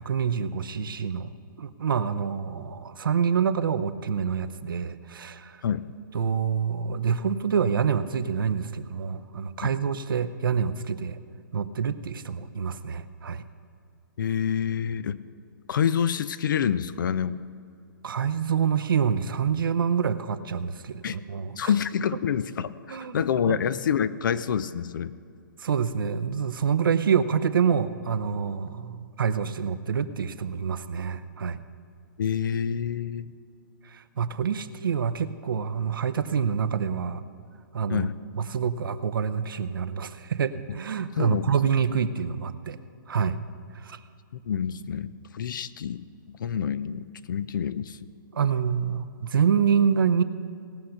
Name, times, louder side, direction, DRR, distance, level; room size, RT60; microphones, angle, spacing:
voice 1, 0.0-1.3 1.6-5.6 6.1-11.2 11.5-13.4 18.0-21.7 22.9-23.6 25.6-31.6 33.8-37.2 37.7-38.1 38.3-42.8 43.1-43.4 43.7-44.0 48.3-50.2, right 7 dB, 75° right, 11 dB, 0.7 m, -27 dB
voice 2, 5.6-5.9 9.6-9.7 14.2-15.2 15.7-17.4 21.0-21.2 21.6-25.1 32.2-33.3 37.9-38.2 41.2-41.5 44.4-46.0 46.4-48.0, left 8 dB, 65° left, 15 dB, 0.6 m, -27 dB
18.5 x 6.5 x 5.8 m, 2.4 s
hypercardioid pair, 140°, 11 cm